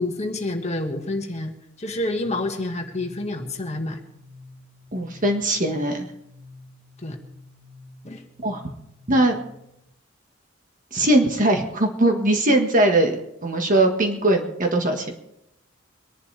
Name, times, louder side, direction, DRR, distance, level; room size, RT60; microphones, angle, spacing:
voice 1, 0.0-4.0 7.0-7.2 8.0-8.2, left 2 dB, 35° left, 4 dB, 1.7 m, -28 dB
sound 1, 2.3-9.8, left 1 dB, 20° right, 2.4 m, -48 dB
voice 2, 4.9-6.1 8.4-8.6 9.1-9.4 10.9-15.1, right 1 dB, 40° right, 3 dB, 1.5 m, -20 dB
24.0 x 11.0 x 3.4 m, 0.80 s
head